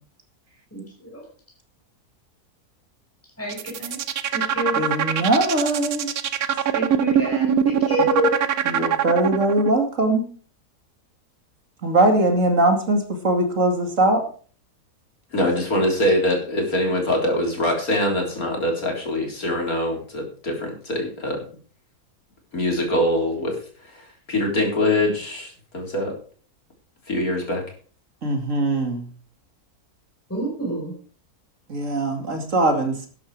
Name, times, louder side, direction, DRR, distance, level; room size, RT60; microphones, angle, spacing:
voice 1, 0.7-1.1 3.4-4.0 4.3-4.8 6.7-8.4 30.3-30.9, equal, 10° left, -2 dB, 5.0 m, -26 dB
sound 1, 3.4-9.7, right 9 dB, 75° right, 1.4 m, -22 dB
voice 2, 4.7-6.1 8.6-10.3 11.8-14.2 28.2-29.1 31.7-33.1, right 2 dB, 55° right, 4 dB, 2.7 m, -21 dB
voice 3, 15.3-21.5 22.5-23.6 23.8-26.1 27.1-27.6, left 1 dB, 65° left, 1 dB, 4.1 m, -23 dB
12.5 x 10.5 x 4.9 m, 0.43 s
omnidirectional pair, 1.6 m